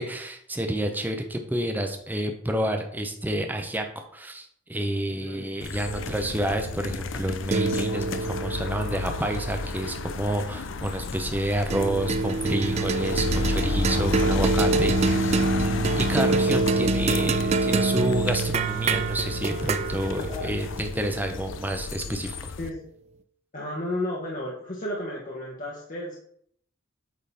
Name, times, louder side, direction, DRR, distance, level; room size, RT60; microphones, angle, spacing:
voice 1, 0.0-22.5, right 1 dB, 10° right, 4 dB, 0.7 m, -29 dB
voice 2, 5.1-5.5 20.3-20.5 22.6-22.9 23.5-26.2, left 1 dB, 40° left, -5 dB, 1.2 m, -33 dB
sound 1, 5.6-22.7, left 4 dB, 70° left, 0.5 m, -32 dB
sound 2, 5.9-10.5 11.7-22.2, right 3 dB, 35° right, 0.3 m, -27 dB
8.4 x 3.8 x 4.2 m, 0.66 s
head